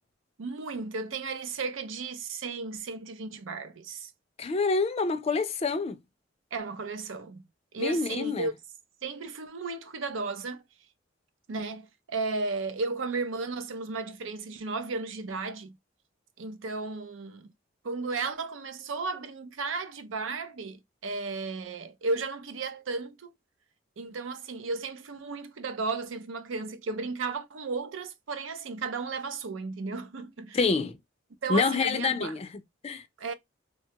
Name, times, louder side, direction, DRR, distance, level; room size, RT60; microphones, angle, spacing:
voice 1, 0.4-4.1 6.5-7.4 7.7-8.5 9.0-10.6 11.5-15.7 16.4-17.5 17.8-23.3 24.0-30.6 31.4-32.3 33.2-33.3, right 3 dB, 85° right, 0.5 m, -34 dB
voice 2, 4.4-6.0 7.8-8.5 30.5-31.0 31.5-32.5 32.8-33.0, left 4 dB, 35° left, 0.4 m, -27 dB
3.2 x 2.2 x 2.7 m
head